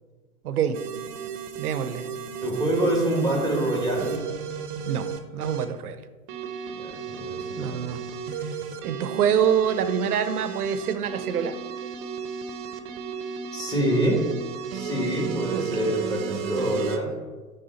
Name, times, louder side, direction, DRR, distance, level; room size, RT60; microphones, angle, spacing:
voice 1, 0.4-0.8 1.6-2.1 4.9-5.1 5.3-6.0 7.6-8.0 8.8-11.6 15.5-15.6, right 8 dB, 80° right, 12 dB, 0.7 m, -25 dB
sound 1, 0.7-5.7 6.3-17.0, right 7 dB, 40° right, 0.8 m, -34 dB
voice 2, 2.4-4.2 6.7-8.1 13.5-14.3 14.7-17.1, right 1 dB, 10° left, -3 dB, 2.1 m, -26 dB
10.0 x 3.6 x 4.1 m, 1.3 s
hypercardioid pair, 115°, 44 cm